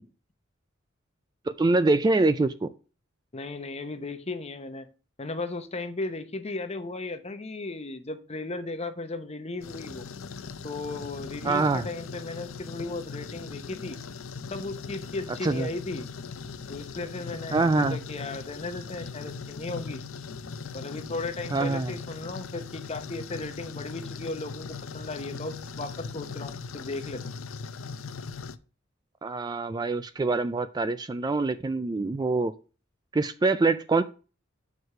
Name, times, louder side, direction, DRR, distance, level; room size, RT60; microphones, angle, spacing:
voice 1, 1.5-2.7 11.4-11.9 15.4-15.7 17.5-18.0 21.5-22.0 29.2-32.5 33.1-34.0, right 3 dB, 20° right, 0.3 m, -25 dB
voice 2, 3.3-4.9 5.2-10.0 10.6-14.0 14.5-16.1 16.7-20.0 20.7-27.2, left 3 dB, 30° left, 0.8 m, -36 dB
sound 1, 9.6-28.6, left 5 dB, 90° left, 0.6 m, -40 dB
6.4 x 4.8 x 5.4 m
head